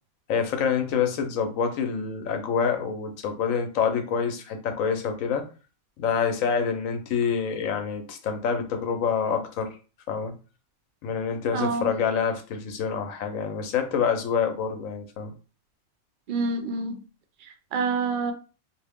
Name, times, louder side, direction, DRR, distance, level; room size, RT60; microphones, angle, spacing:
voice 1, 0.3-5.5 6.0-9.7 10.1-10.3 11.0-15.3, left 6 dB, 70° left, 6 dB, 1.0 m, -27 dB
voice 2, 11.5-11.9 16.3-17.0 17.7-18.3, right 4 dB, 70° right, 6 dB, 0.4 m, -27 dB
2.8 x 2.6 x 3.5 m, 0.34 s
omnidirectional pair, 1.5 m